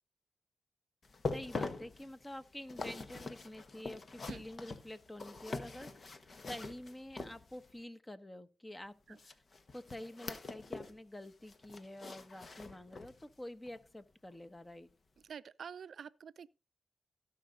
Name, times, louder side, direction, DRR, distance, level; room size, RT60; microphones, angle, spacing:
sound 1, 1.0-7.8 9.2-11.0 11.3-13.2 13.7-13.8 14.4-14.5, left 3 dB, 55° left, 1.3 m, -44 dB
voice 1, 1.3-6.2 6.4-9.3 9.7-14.9, left 1 dB, 20° left, 1.3 m, -48 dB
voice 2, 15.3-16.5, right 7 dB, 70° right, 0.5 m, -47 dB
16.5 x 5.7 x 3.9 m
supercardioid pair, 45°, 0 cm